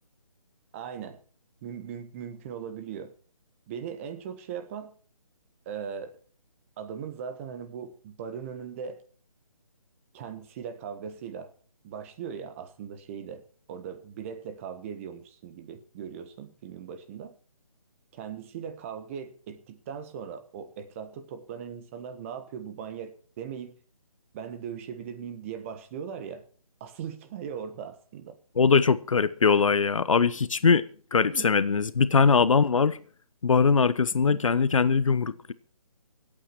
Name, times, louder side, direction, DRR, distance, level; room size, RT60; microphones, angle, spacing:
voice 1, 0.7-1.2 1.6-3.1 3.7-4.9 5.6-6.2 6.8-9.0 10.1-11.5 11.8-13.4 13.7-17.4 18.1-23.8 24.3-26.4 26.8-28.4 31.3-31.5 32.3-32.4 34.2-34.4, right 7 dB, 25° right, 1.3 m, -39 dB
voice 2, 28.6-30.8 31.1-33.0 33.4-35.5, left 5 dB, 65° left, 0.9 m, -21 dB
23.5 x 8.8 x 4.6 m
figure-of-eight pair, 155°, 18 cm